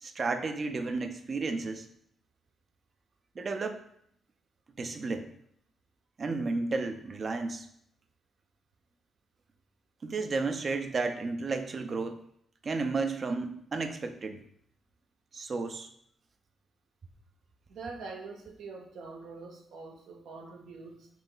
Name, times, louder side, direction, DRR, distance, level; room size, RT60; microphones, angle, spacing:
voice 1, 0.0-1.9 3.4-3.8 4.8-5.3 6.2-7.7 10.0-12.2 12.6-14.4 15.3-15.9, right 3 dB, 40° right, 7 dB, 0.4 m, -32 dB
voice 2, 17.7-21.1, right 4 dB, 85° right, 1 dB, 0.7 m, -44 dB
3.1 x 2.9 x 3.7 m, 0.68 s
cardioid pair, 105°, 0 cm